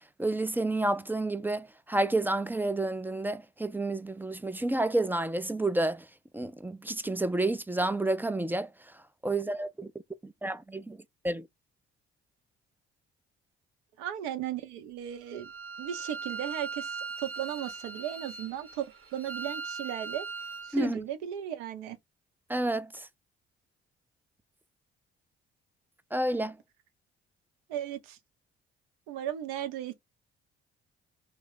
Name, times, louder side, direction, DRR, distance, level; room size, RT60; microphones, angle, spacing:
voice 1, 0.2-6.0 6.3-8.7 9.2-9.9 10.2-11.0 11.2-11.5 20.7-21.0 22.5-23.0 26.1-26.6, right 2 dB, 5° right, 0.3 m, -30 dB
voice 2, 14.0-15.5 15.8-18.9 19.1-20.3 20.6-22.0 27.7-28.2 29.1-29.9, right 10 dB, 70° right, 0.8 m, -36 dB
Bowed string instrument, 15.3-20.7, right 5 dB, 40° right, 0.9 m, -39 dB
3.3 x 2.2 x 3.8 m
figure-of-eight pair, 45°, 32 cm